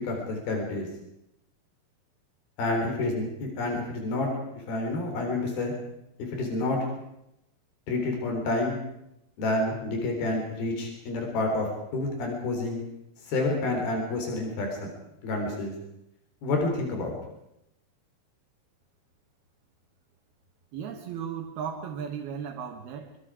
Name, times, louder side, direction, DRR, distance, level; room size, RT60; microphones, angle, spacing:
voice 1, 0.0-0.9 2.6-4.3 4.7-5.7 6.2-6.8 7.9-8.8 9.4-12.8 13.3-15.0 15.2-15.7 16.4-17.2, left 2 dB, 80° left, 2 dB, 5.7 m, -29 dB
voice 2, 20.7-23.2, right 7 dB, 90° right, 2 dB, 3.4 m, -36 dB
25.5 x 24.5 x 4.9 m, 0.82 s
omnidirectional pair, 4.3 m